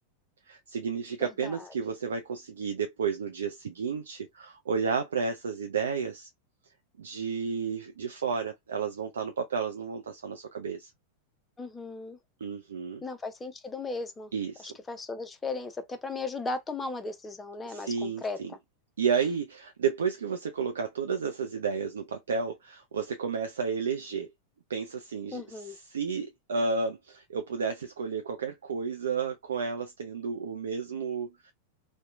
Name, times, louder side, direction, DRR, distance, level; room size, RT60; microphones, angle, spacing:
voice 1, 0.5-6.3 7.0-10.9 12.4-13.0 14.3-14.7 17.7-18.5 19.0-24.3 24.7-31.5, right 5 dB, 65° right, 0.3 m, -32 dB
voice 2, 11.6-12.2 13.0-14.3 14.6-18.4 25.3-25.8, left 3 dB, 15° left, 0.5 m, -36 dB
2.7 x 2.1 x 2.3 m
figure-of-eight pair, 90°, 0 cm